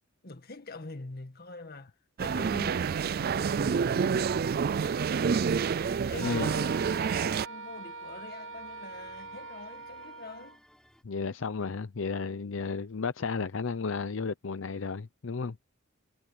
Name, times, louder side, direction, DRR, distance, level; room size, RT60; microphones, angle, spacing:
voice 1, 0.2-5.4 5.7-10.6, left 2 dB, 50° left, 1.9 m, -46 dB
sound 1, 2.2-7.5, right 6 dB, 50° right, 0.4 m, -28 dB
sound 2, 2.8-11.0, equal, 5° left, 4.0 m, -60 dB
Wind instrument woodwind instrument, 6.2-10.6, right 3 dB, 70° right, 0.9 m, -43 dB
voice 2, 11.0-15.7, left 4 dB, 70° left, 0.6 m, -33 dB
head